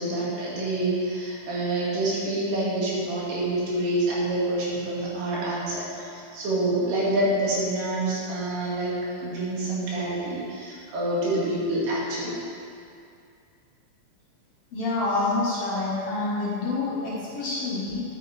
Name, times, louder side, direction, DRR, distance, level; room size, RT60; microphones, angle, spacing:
voice 1, 0.0-12.4, right 1 dB, 80° right, -6 dB, 3.5 m, -27 dB
voice 2, 14.7-18.0, left 3 dB, 55° left, -7 dB, 1.9 m, -27 dB
10.5 x 8.7 x 3.2 m, 2.4 s
omnidirectional pair, 3.9 m